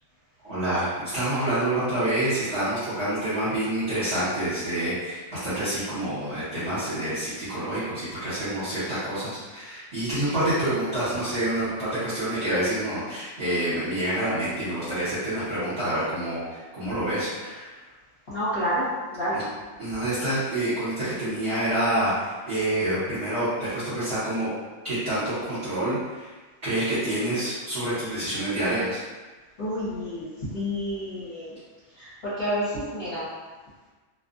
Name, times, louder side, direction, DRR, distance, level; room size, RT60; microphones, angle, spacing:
voice 1, 0.4-17.8 19.3-19.4 19.8-24.5 24.8-26.3 26.6-29.0, right 1 dB, 50° right, -15 dB, 1.2 m, -27 dB
voice 2, 18.3-19.4 29.6-31.6 32.0-33.3, equal, 50° left, -14 dB, 1.1 m, -29 dB
2.5 x 2.4 x 2.5 m, 1.3 s
omnidirectional pair, 1.4 m